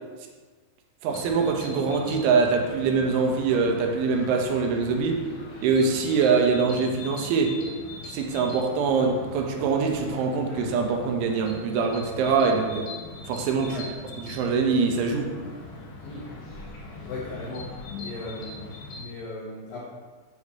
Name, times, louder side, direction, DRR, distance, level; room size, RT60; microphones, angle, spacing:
voice 1, 1.0-5.2 5.6-7.6 8.0-12.9 13.3-13.8 14.2-15.3, right 5 dB, 85° right, 2 dB, 3.1 m, -24 dB
sound 1, 1.1-19.0, left 3 dB, 65° left, 2.6 m, -41 dB
voice 2, 17.0-19.8, left 2 dB, 80° left, -5 dB, 2.0 m, -38 dB
9.2 x 3.3 x 6.8 m, 1.4 s
omnidirectional pair, 5.5 m